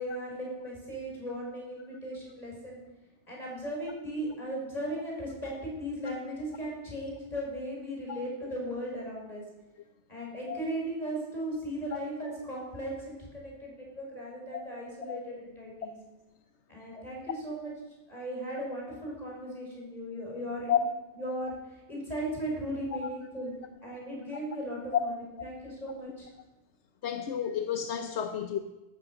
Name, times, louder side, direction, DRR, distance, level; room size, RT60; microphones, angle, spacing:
voice 1, 0.0-2.8 3.3-9.4 10.1-16.0 16.7-17.7 18.1-20.8 21.2-23.5 23.8-26.3, right 1 dB, 35° left, 6.0 m, -37 dB
voice 2, 27.0-28.6, left 9 dB, 75° left, 1.1 m, -31 dB
15.0 x 12.5 x 5.9 m
omnidirectional pair, 1.2 m